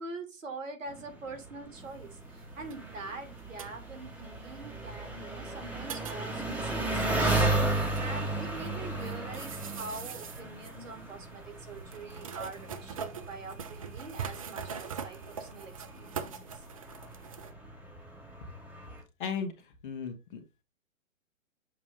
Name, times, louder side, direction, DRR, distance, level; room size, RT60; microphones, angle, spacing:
voice 1, 0.0-16.6, right 3 dB, 65° right, 7 dB, 2.3 m, -44 dB
Engine, 0.9-19.0, right 2 dB, 5° right, 1.3 m, -35 dB
sound 1, 1.8-17.5, right 6 dB, 25° right, 0.4 m, -44 dB
voice 2, 19.2-20.6, left 6 dB, 40° left, 5 dB, 1.4 m, -37 dB
7.3 x 2.7 x 5.1 m, 0.25 s
figure-of-eight pair, 135°, 40 cm